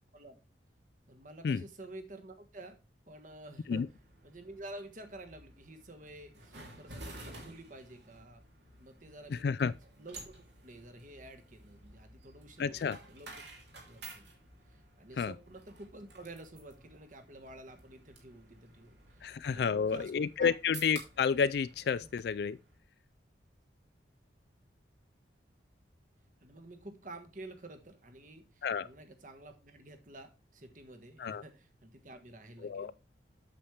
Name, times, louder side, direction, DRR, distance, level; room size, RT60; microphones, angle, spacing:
voice 1, 1.1-2.8 3.1-3.9 4.2-8.4 8.8-9.7 10.0-13.3 13.8-20.1 20.4-20.5 22.0-22.1 26.4-32.9, right 2 dB, 45° right, 1.4 m, -50 dB
sound 1, 3.7-22.8, right 2 dB, 70° right, 2.9 m, -53 dB
voice 2, 9.3-9.7 12.6-13.0 15.2-15.3 19.2-22.6 28.6-28.9 31.2-31.4 32.6-32.9, left 6 dB, 60° left, 0.3 m, -30 dB
8.4 x 7.2 x 3.3 m
head